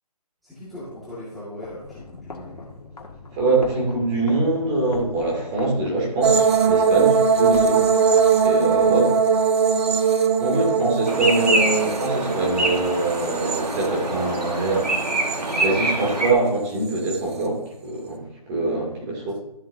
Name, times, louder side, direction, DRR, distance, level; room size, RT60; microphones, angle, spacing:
voice 1, 0.4-2.7 8.7-9.0 9.3-9.4 9.8-9.9 19.2-19.3, left 1 dB, ahead, -12 dB, 2.0 m, -39 dB
sound 1, 1.5-8.9, left 3 dB, 70° left, 1.9 m, -42 dB
voice 2, 3.3-7.9 8.4-9.1 10.4-19.3, right 2 dB, 20° right, -2 dB, 2.6 m, -24 dB
sound 2, 6.2-14.4 14.8-15.6 16.9-17.2, right 6 dB, 40° right, 1.1 m, -21 dB
sound 3, 11.1-16.3, right 2 dB, 85° right, 2.0 m, -25 dB
13.0 x 7.5 x 2.8 m, 0.87 s
figure-of-eight pair, 155°, 20 cm